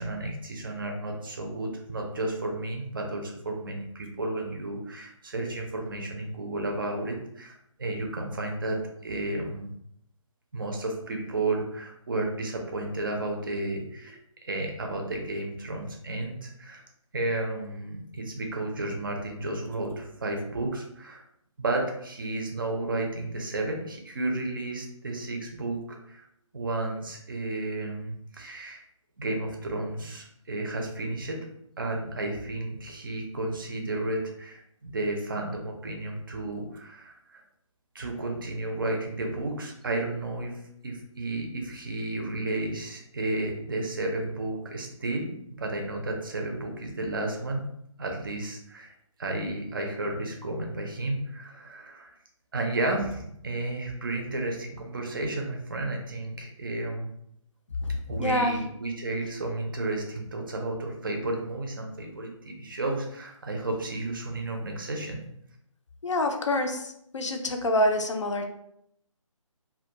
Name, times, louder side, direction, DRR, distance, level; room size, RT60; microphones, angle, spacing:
voice 1, 0.0-8.8 9.0-9.7 10.5-16.8 17.1-21.2 21.6-26.2 26.5-28.8 29.2-31.4 31.8-37.4 37.9-40.6 40.8-47.6 48.0-48.9 49.2-52.1 52.5-57.1 58.1-65.2, right 2 dB, 40° right, 2 dB, 0.5 m, -32 dB
voice 2, 58.2-58.5 66.0-66.8 67.1-68.5, left 1 dB, 60° left, 4 dB, 0.4 m, -26 dB
2.2 x 2.1 x 2.9 m, 0.75 s
figure-of-eight pair, 145°, 17 cm